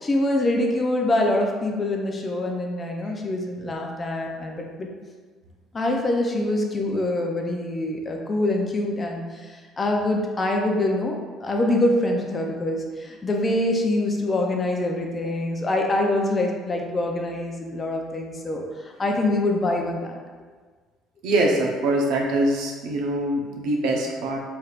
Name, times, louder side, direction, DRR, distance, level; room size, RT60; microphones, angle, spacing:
voice 1, 0.0-4.9 5.7-20.2 21.9-22.0, left 1 dB, 25° left, 1 dB, 0.5 m, -25 dB
voice 2, 21.2-24.4, right 1 dB, 80° right, -1 dB, 0.7 m, -23 dB
4.3 x 3.2 x 2.4 m, 1.5 s
cardioid pair, 130°, 0 cm